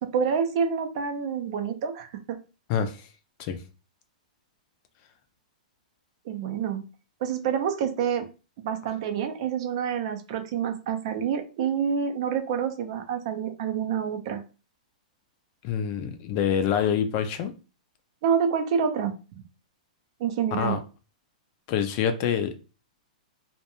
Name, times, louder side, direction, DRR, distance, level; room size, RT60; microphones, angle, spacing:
voice 1, 0.0-2.4 6.3-6.8 7.2-8.3 8.6-14.4 18.2-19.1 20.2-20.8, right 7 dB, 50° right, 7 dB, 0.4 m, -27 dB
voice 2, 2.7-3.1 3.4-3.6 15.6-17.5 20.5-20.8 21.7-22.6, left 8 dB, 35° left, 8 dB, 0.3 m, -26 dB
2.2 x 2.1 x 3.0 m, 0.33 s
hypercardioid pair, 150°, 4 cm